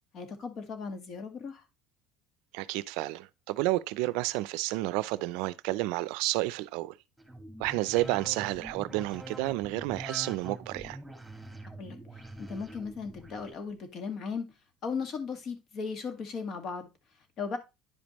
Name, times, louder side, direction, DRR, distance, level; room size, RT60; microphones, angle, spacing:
voice 1, 0.1-1.6 11.8-12.0 12.4-14.5 14.8-16.9 17.4-17.6, left 5 dB, 55° left, 1.8 m, -36 dB
voice 2, 2.5-7.0 7.6-11.0, right 19 dB, 80° right, 0.4 m, -31 dB
sound 1, 7.2-13.5, right 1 dB, 5° right, 2.1 m, -45 dB
9.9 x 5.2 x 3.0 m
supercardioid pair, 100°, 0 cm